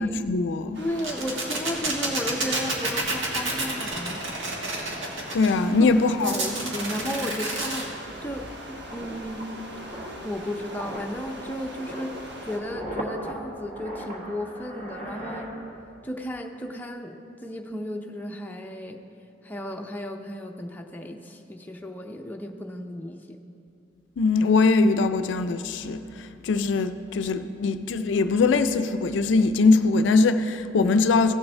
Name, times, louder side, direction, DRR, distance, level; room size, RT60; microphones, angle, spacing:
voice 1, 0.0-0.8 5.3-6.4 24.2-31.3, left 3 dB, 70° left, 0.4 m, -22 dB
sound 1, 0.7-12.6, equal, 60° right, 1.4 m, -42 dB
voice 2, 0.8-4.2 5.8-6.0 6.2-9.5 10.2-15.5 16.0-19.0 19.4-23.4, left 1 dB, 10° left, 0.5 m, -34 dB
sound 2, 1.0-5.5 6.2-7.8, right 2 dB, 80° right, 1.5 m, -29 dB
sound 3, 7.0-16.1 16.4-16.6, right 1 dB, 40° right, 1.3 m, -39 dB
15.5 x 7.0 x 3.2 m
head